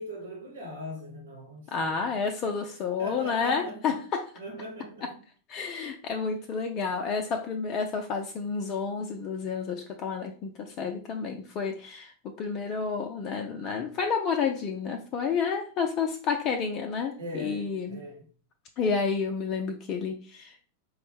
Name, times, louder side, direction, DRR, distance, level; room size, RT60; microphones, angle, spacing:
voice 1, 0.0-2.0 3.0-4.0 4.3-5.1 17.2-18.2, left 1 dB, 75° right, 1.0 m, -40 dB
voice 2, 1.7-4.3 5.5-18.0 18.8-20.7, left 5 dB, 35° left, 0.4 m, -30 dB
4.3 x 2.0 x 3.2 m
figure-of-eight pair, 90°, 0 cm